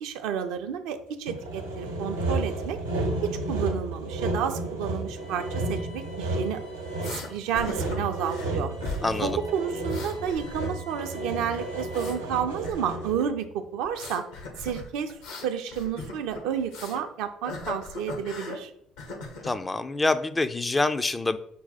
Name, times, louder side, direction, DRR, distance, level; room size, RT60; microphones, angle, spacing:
voice 1, 0.0-2.8 3.2-6.6 7.0-8.7 9.2-14.2 14.6-15.1 15.4-18.7, right 8 dB, 65° right, 7 dB, 0.4 m, -31 dB
Sawing, 1.3-13.3, right 2 dB, 85° right, 0.8 m, -32 dB
Bowed string instrument, 5.1-12.4, left 3 dB, 85° left, 1.7 m, -51 dB
sound 1, 7.0-7.3 7.5-8.5 8.8-9.3 9.6-11.0 11.3-12.2 12.6-13.3 13.8-17.0 17.4-18.6 19.0-19.6, left 2 dB, 65° left, 0.8 m, -38 dB
voice 2, 19.4-21.4, left 2 dB, 20° left, 11 dB, 0.3 m, -26 dB
5.5 x 2.1 x 4.1 m, 0.69 s
figure-of-eight pair, 50°, 0 cm